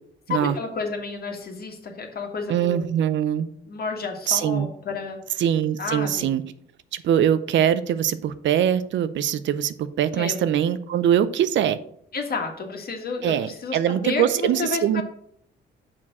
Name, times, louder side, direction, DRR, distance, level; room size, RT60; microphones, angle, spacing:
voice 1, 0.3-2.9 3.7-5.4 5.8-6.3 10.2-10.4 12.1-15.0, left 4 dB, 50° left, 3 dB, 1.8 m, -31 dB
voice 2, 2.5-3.5 4.3-4.7 5.4-6.4 6.9-11.8 13.2-15.0, right 10 dB, 70° right, 14 dB, 0.6 m, -22 dB
6.1 x 4.5 x 6.1 m, 0.68 s
cardioid pair, 90°, 20 cm